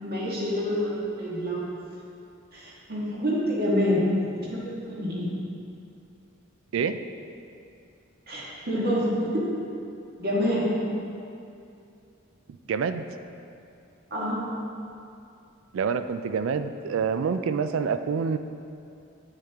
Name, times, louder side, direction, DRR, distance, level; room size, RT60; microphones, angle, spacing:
voice 1, 0.0-0.9 1.2-1.6 2.5-4.1 4.4-5.3 8.3-9.4 10.2-10.7 14.1-14.4, equal, 50° right, -5 dB, 1.6 m, -27 dB
voice 2, 12.7-13.0 15.7-18.4, right 6 dB, 75° right, 10 dB, 0.4 m, -27 dB
8.2 x 6.5 x 3.5 m, 2.6 s
head